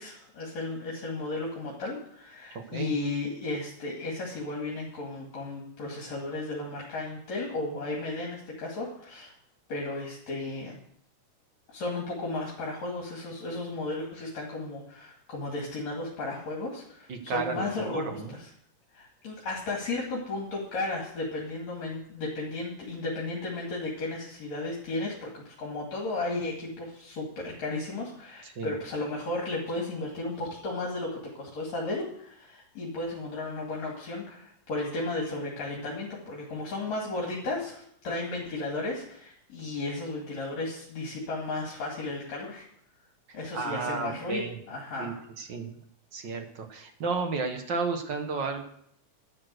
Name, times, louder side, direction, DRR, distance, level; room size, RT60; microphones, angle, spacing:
voice 1, 0.0-9.3 9.7-10.8 11.7-18.5 18.9-42.7 43.3-45.2, left 2 dB, 60° left, -3 dB, 3.5 m, -34 dB
voice 2, 2.5-2.9 17.1-18.3 28.4-28.7 43.5-44.6 45.0-45.7 46.1-48.6, right 4 dB, 50° right, 5 dB, 1.4 m, -33 dB
12.0 x 10.5 x 6.5 m, 0.69 s
omnidirectional pair, 3.6 m